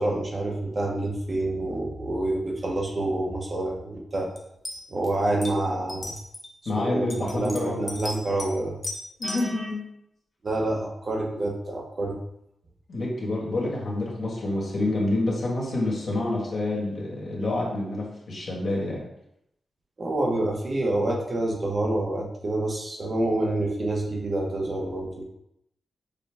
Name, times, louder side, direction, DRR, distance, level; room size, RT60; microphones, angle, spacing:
voice 1, 0.0-4.3 4.9-6.1 6.8-8.8 9.2-9.7 10.4-12.2 20.0-25.2, right 2 dB, 35° right, -1 dB, 0.8 m, -27 dB
sound 1, 4.4-4.5 4.6-5.1 5.4-5.5 5.9-6.5 7.1-8.5 8.8-9.5, left 1 dB, 25° left, 0.6 m, -35 dB
voice 2, 6.6-7.8 9.2-9.8 12.9-19.0, left 2 dB, 55° left, -3 dB, 1.4 m, -28 dB
6.6 x 2.2 x 3.4 m, 0.77 s
wide cardioid pair, 175°, 0 cm